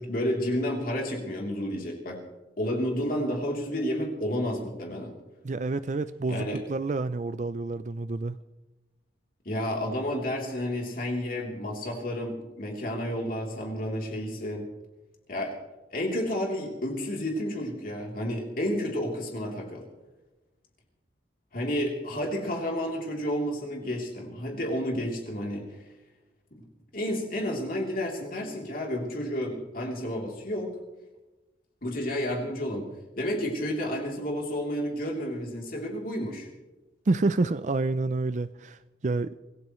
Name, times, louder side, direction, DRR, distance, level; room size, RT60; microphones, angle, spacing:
voice 1, 0.0-2.2 2.6-5.1 6.3-6.6 9.4-14.6 15.3-15.6 15.9-19.8 21.5-25.7 26.5-26.6 26.9-30.7 31.8-36.5, equal, 50° left, 3.3 m, -31 dB
voice 2, 5.4-8.4 37.1-39.4, right 3 dB, 40° right, 0.4 m, -28 dB
26.5 x 17.0 x 3.1 m
head